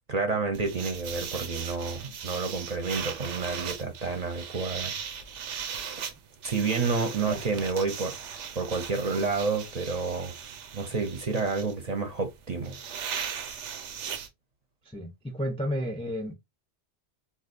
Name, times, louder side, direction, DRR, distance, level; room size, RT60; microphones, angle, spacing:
voice 1, 0.1-4.9 6.4-8.2 8.5-10.3 10.7-12.8, right 4 dB, 40° right, 0.7 m, -29 dB
sound 1, 0.5-14.3, right 7 dB, 90° right, 1.0 m, -38 dB
voice 2, 14.8-16.3, equal, 5° left, 0.4 m, -32 dB
3.9 x 2.4 x 2.5 m
omnidirectional pair, 1.2 m